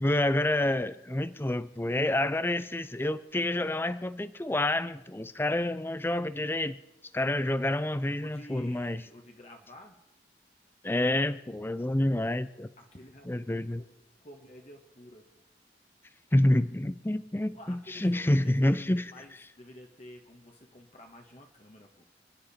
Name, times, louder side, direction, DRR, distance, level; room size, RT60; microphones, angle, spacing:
voice 1, 0.0-6.8 7.1-9.0 10.8-12.7 13.2-13.8 16.3-19.1, left 1 dB, 15° left, 0.5 m, -28 dB
voice 2, 8.2-10.0 12.8-13.9 14.2-15.4 17.5-22.0, left 1 dB, 40° left, 1.5 m, -51 dB
29.0 x 10.5 x 4.3 m
head